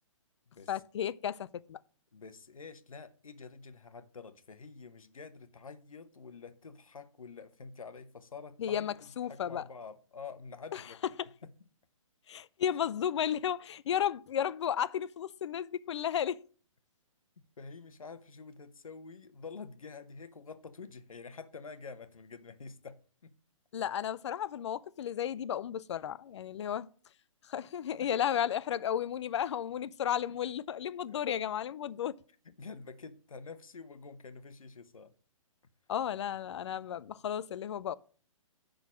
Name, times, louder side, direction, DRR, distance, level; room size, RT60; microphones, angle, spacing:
voice 1, 0.7-1.8 8.6-9.6 10.7-10.8 12.3-16.4 23.7-26.9 27.4-32.2 35.9-37.9, left 9 dB, 55° left, 0.5 m, -33 dB
voice 2, 2.1-8.9 9.3-11.0 11.4-11.5 17.6-23.0 23.2-23.4 28.0-28.1 31.1-31.2 32.4-35.1, left 5 dB, 80° left, 1.0 m, -48 dB
9.7 x 3.9 x 6.1 m
figure-of-eight pair, 130°, 17 cm